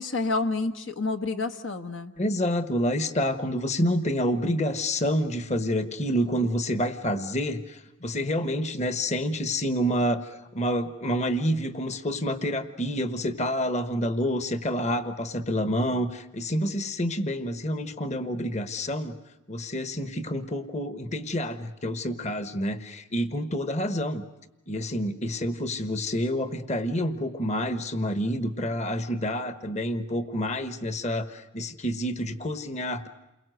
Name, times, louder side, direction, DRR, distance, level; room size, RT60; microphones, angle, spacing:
voice 1, 0.0-2.1, left 3 dB, 60° left, 6 dB, 1.2 m, -29 dB
voice 2, 2.2-19.2 19.5-24.2 24.7-33.1, equal, 35° left, 10 dB, 1.3 m, -28 dB
29.5 x 22.5 x 7.9 m, 0.98 s
head